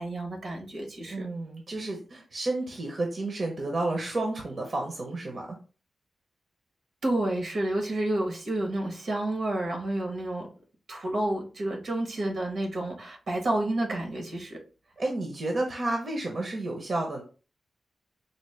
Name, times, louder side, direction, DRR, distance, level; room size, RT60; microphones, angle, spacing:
voice 1, 0.0-1.3 7.0-10.5 10.9-14.6, right 1 dB, 70° right, 1 dB, 1.1 m, -30 dB
voice 2, 1.0-5.6 15.0-17.2, right 2 dB, 50° right, 1 dB, 0.8 m, -31 dB
4.1 x 2.1 x 3.2 m, 0.35 s
wide cardioid pair, 95°, 0 cm